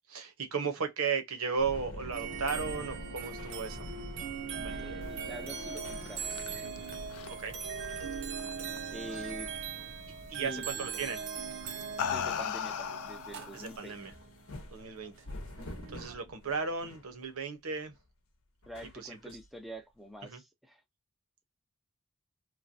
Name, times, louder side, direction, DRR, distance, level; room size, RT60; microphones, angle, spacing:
voice 1, 0.1-3.9 4.6-5.0 7.3-7.5 10.3-11.3 13.5-14.1 14.7-15.1 15.9-17.9 18.9-19.4 20.2-20.4, right 5 dB, 80° right, 0.9 m, -35 dB
sound 1, 1.6-17.2 17.7-18.0 18.6-19.5 20.3-20.4, left 1 dB, 75° left, 0.8 m, -47 dB
sound 2, 2.1-16.1, right 6 dB, 55° right, 0.5 m, -41 dB
voice 2, 4.7-6.7 8.9-9.5 10.4-10.7 12.0-14.0 18.7-20.8, equal, ahead, 0.4 m, -46 dB
sound 3, 5.9-8.8 9.1-9.6 10.8-11.0 11.6-13.8, left 8 dB, 90° left, 0.4 m, -37 dB
3.1 x 2.2 x 2.5 m
head